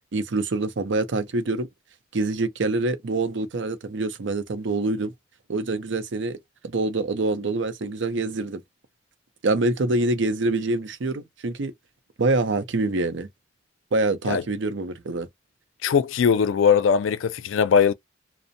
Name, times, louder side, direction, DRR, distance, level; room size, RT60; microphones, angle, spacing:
voice 1, 0.1-1.7 2.1-5.1 5.5-6.4 6.6-8.6 9.4-11.7 12.2-13.3 13.9-15.3, right 2 dB, 70° right, 0.6 m, -25 dB
voice 2, 15.8-17.9, left 6 dB, 80° left, 0.3 m, -20 dB
2.5 x 2.0 x 2.6 m
head